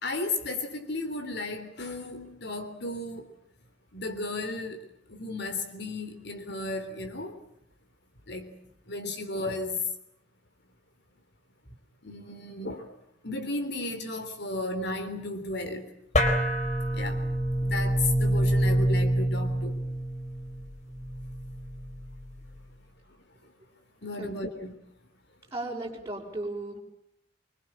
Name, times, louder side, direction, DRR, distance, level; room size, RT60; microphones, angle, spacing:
voice 1, 0.0-3.3 3.9-7.4 8.3-8.6 8.9-9.9 12.0-12.9 13.2-15.9 16.9-17.2 17.6-19.8 23.4-23.5 24.0-24.7, left 2 dB, 55° left, 3.5 m, -34 dB
sound 1, 16.1-22.9, right 1 dB, 35° left, 4.1 m, -27 dB
voice 2, 24.2-24.5 25.5-26.8, right 2 dB, 15° right, 6.3 m, -35 dB
26.0 x 25.0 x 7.6 m
head